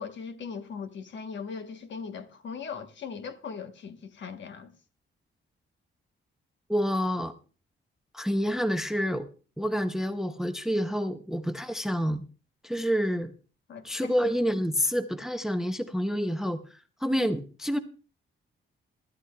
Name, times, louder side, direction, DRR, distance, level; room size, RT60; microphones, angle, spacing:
voice 1, 0.0-4.7 13.7-14.1, left 6 dB, 60° left, 1.1 m, -39 dB
voice 2, 6.7-7.3 8.1-9.3 9.6-12.2 12.6-13.3 13.8-16.6 17.0-17.8, equal, ahead, 0.5 m, -28 dB
21.5 x 12.5 x 2.2 m
wide cardioid pair, 175°, 21 cm